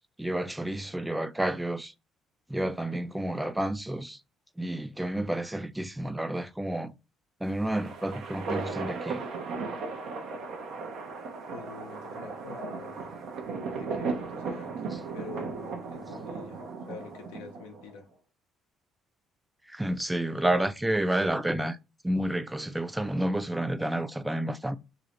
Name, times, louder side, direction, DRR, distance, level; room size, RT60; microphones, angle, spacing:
voice 1, 0.2-1.9 2.5-4.2 4.6-7.0 7.4-9.2 14.9-15.0 19.7-21.8 22.0-24.8, right 1 dB, 10° right, 0.3 m, -30 dB
sound 1, 7.4-17.9, right 4 dB, 70° right, 0.5 m, -36 dB
voice 2, 11.5-13.1 13.7-18.1, left 5 dB, 85° left, 0.5 m, -46 dB
2.5 x 2.0 x 2.8 m
hypercardioid pair, 55°, 0 cm